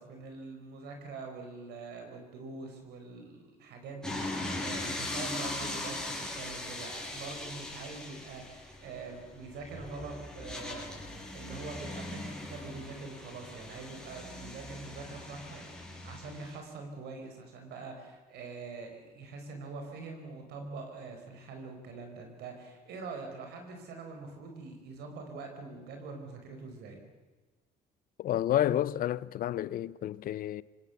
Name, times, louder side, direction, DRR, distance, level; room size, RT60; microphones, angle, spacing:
voice 1, 0.0-10.9 11.3-27.0, right 4 dB, 75° right, 4.7 m, -44 dB
sound 1, 4.0-16.6, left 2 dB, 5° left, 6.8 m, -40 dB
voice 2, 28.2-30.6, left 12 dB, 60° left, 0.7 m, -30 dB
25.5 x 18.5 x 7.2 m
cardioid pair, 110°, 17 cm